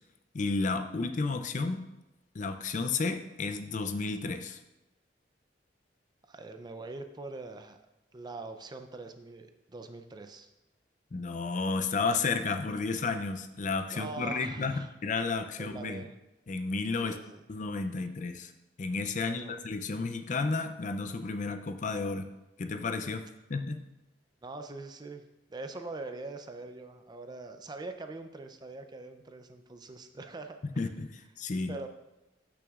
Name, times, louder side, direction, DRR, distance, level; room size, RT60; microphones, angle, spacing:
voice 1, 0.3-1.9 2.3-4.6 11.1-16.0 16.5-17.2 17.5-18.5 18.8-22.3 22.6-23.2 23.5-23.8 30.8-31.8, left 4 dB, 45° left, 8 dB, 0.5 m, -32 dB
voice 2, 6.3-7.8 8.1-10.5 13.9-14.9 15.6-16.1 17.0-17.5 19.1-19.5 24.4-25.2 25.5-30.8 31.7-31.9, right 3 dB, 25° right, 7 dB, 0.5 m, -43 dB
12.5 x 6.0 x 2.4 m, 0.99 s
head